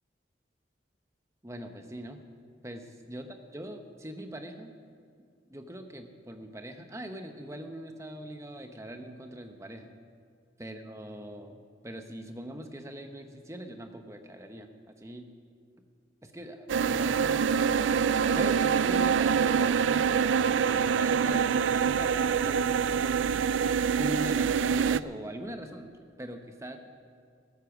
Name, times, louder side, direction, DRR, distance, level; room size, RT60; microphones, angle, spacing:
voice 1, 1.4-2.2 2.6-4.7 5.5-9.9 10.6-15.3 16.2-17.4 18.3-20.2 20.6-22.6 23.0-23.4 24.0-25.9 26.2-26.9, right 1 dB, 15° right, 6 dB, 1.0 m, -41 dB
sound 1, 16.7-25.0, right 6 dB, 80° right, 0.4 m, -25 dB
14.5 x 13.5 x 6.0 m, 2.3 s
head